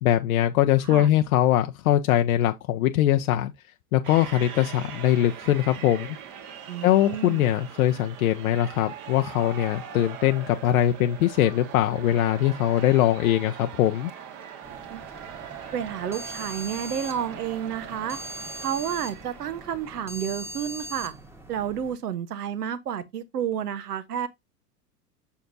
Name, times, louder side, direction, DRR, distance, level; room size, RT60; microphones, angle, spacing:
voice 1, 0.0-3.5 3.9-6.2 6.8-14.1, left 12 dB, 60° left, 0.7 m, -22 dB
sound 1, 4.0-20.3, right 8 dB, 40° right, 1.6 m, -41 dB
voice 2, 6.7-7.5 14.9-15.0 15.7-18.2 18.6-21.1 21.5-24.3, right 9 dB, 75° right, 1.1 m, -30 dB
sound 2, 14.6-21.9, right 1 dB, 5° right, 1.3 m, -41 dB
7.0 x 6.2 x 2.6 m
figure-of-eight pair, 90°, 47 cm